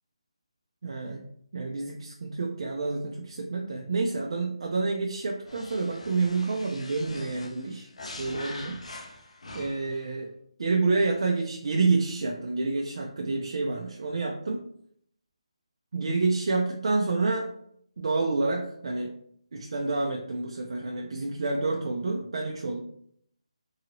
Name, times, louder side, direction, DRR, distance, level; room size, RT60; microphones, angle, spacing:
voice 1, 0.8-1.3 1.5-7.9 8.2-8.8 9.5-10.3 10.6-14.6 15.9-17.5 18.0-19.1 19.5-22.8, right 3 dB, 55° right, 0 dB, 0.4 m, -28 dB
sound 1, 5.4-10.0, left 2 dB, 80° left, 0.7 m, -43 dB
2.7 x 2.6 x 2.8 m, 0.68 s
hypercardioid pair, 175°, 3 cm